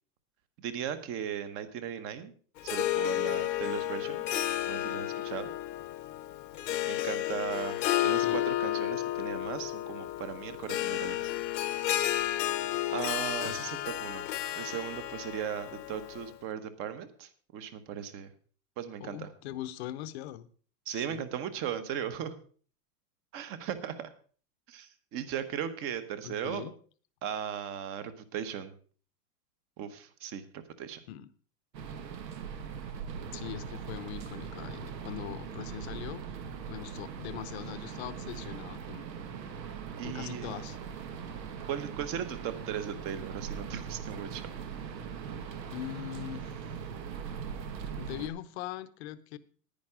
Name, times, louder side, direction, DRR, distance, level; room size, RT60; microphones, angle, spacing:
voice 1, 0.6-2.3 2.6-4.2 4.7-5.5 6.8-11.2 12.9-14.3 14.6-18.3 18.8-19.3 20.9-22.3 23.3-24.1 24.7-26.6 27.2-28.7 29.8-31.0 39.9-40.6 41.7-44.5, right 9 dB, 25° right, 13 dB, 0.9 m, -37 dB
Harp, 2.6-16.3, left 14 dB, 85° left, 1.0 m, -32 dB
voice 2, 19.0-20.5 20.9-21.3 26.2-26.7 31.1-31.3 33.3-36.2 36.6-39.1 40.0-40.8 45.7-46.5 48.0-49.4, left 13 dB, 40° left, 13 dB, 0.7 m, -41 dB
sound 1, 31.7-48.3, right 7 dB, 90° right, 1.6 m, -40 dB
10.5 x 9.9 x 4.9 m, 0.43 s
supercardioid pair, 155°, 49 cm